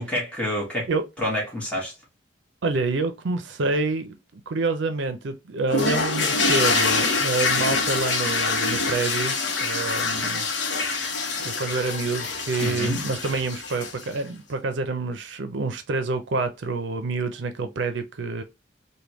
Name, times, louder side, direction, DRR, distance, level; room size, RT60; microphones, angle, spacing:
voice 1, 0.0-0.9 1.2-1.9 12.6-13.0, left 1 dB, 10° left, 1.4 m, -28 dB
voice 2, 2.6-10.5 11.4-18.4, right 3 dB, 75° right, 0.5 m, -27 dB
sound 1, 5.7-14.2, left 4 dB, 75° left, 0.8 m, -25 dB
3.4 x 2.2 x 2.9 m
head